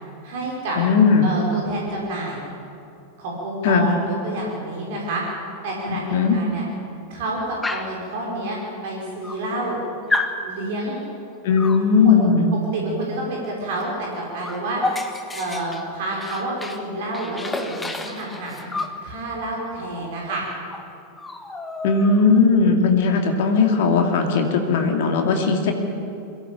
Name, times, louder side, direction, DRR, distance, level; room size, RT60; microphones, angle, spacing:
voice 1, 0.2-0.8 1.2-2.4 3.2-5.2 5.6-6.7 7.1-8.6 8.8-9.8 10.4-11.0 12.0-12.2 12.5-14.8 15.3-20.4, right 1 dB, 50° right, -2 dB, 5.4 m, -29 dB
voice 2, 0.8-1.3 3.6-3.9 5.9-6.4 11.4-12.5 21.8-25.7, left 5 dB, 50° left, 3 dB, 2.5 m, -18 dB
Dog, 7.6-8.0 8.9-9.0 9.2-9.8 10.1-10.4 11.6-11.9 13.7-13.9 14.1-16.8 17.1-19.0 20.3-20.4 20.7-20.9 21.2-22.4, left 2 dB, 10° left, 1.6 m, -30 dB
22.5 x 16.5 x 8.7 m, 2.7 s
figure-of-eight pair, 90°, 0 cm